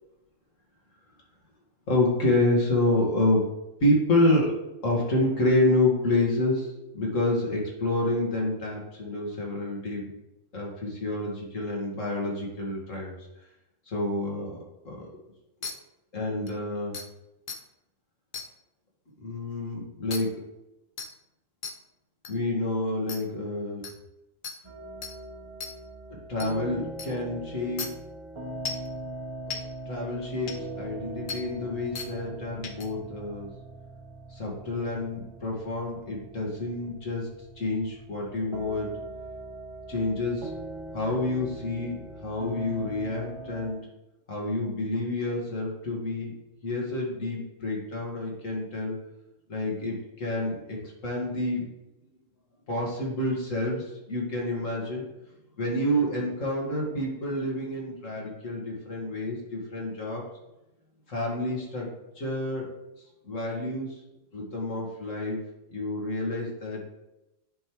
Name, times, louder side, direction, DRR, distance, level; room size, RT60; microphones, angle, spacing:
voice 1, 1.9-3.5 3.8-4.5 4.8-10.1 10.5-13.1 13.9-14.6 14.8-15.1 16.1-17.0 19.2-20.3 22.3-23.8 26.3-27.9 29.5-29.6 29.9-33.5 34.3-37.3 37.6-38.9 39.9-40.5 40.9-43.8 44.3-46.3 46.6-49.0 49.5-51.7 52.7-55.0 55.6-60.2 61.1-61.9 62.2-62.7 63.2-63.9 64.3-65.4 65.7-66.8, left 1 dB, 70° left, -3 dB, 2.4 m, -28 dB
sound 1, 15.6-15.7 16.5-16.6 16.9-17.1 17.5-17.6 18.3-18.5 20.1-20.2 21.0-21.1 21.6-21.7 22.2-22.3 23.1-23.2 23.8-23.9 24.4-24.6 25.0-25.1 25.6-25.7 26.4-26.5 27.0-27.1 27.8-27.9 28.7-28.9 29.5-29.6 30.5-30.6 31.3-31.4 32.0-32.1 32.6-32.9, left 5 dB, 50° left, 0.8 m, -35 dB
sound 2, 24.6-43.7, right 2 dB, 30° right, 0.7 m, -41 dB
10.0 x 5.4 x 3.1 m, 0.95 s
omnidirectional pair, 1.4 m